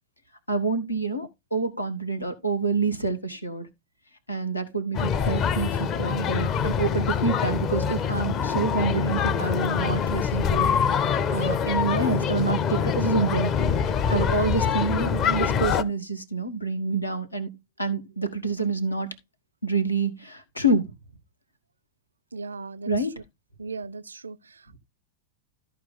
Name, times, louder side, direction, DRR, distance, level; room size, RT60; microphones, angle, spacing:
voice 1, 0.5-3.7 4.3-10.7 11.3-13.5 14.1-17.5 17.8-19.1 19.6-20.9 22.9-23.1, right 3 dB, 85° left, 1.5 m, -27 dB
sound 1, 4.9-15.8, left 7 dB, 35° left, 0.8 m, -25 dB
voice 2, 22.3-22.9 23.6-24.8, right 4 dB, 75° right, 0.4 m, -38 dB
13.5 x 4.7 x 3.9 m
figure-of-eight pair, 90°, 0 cm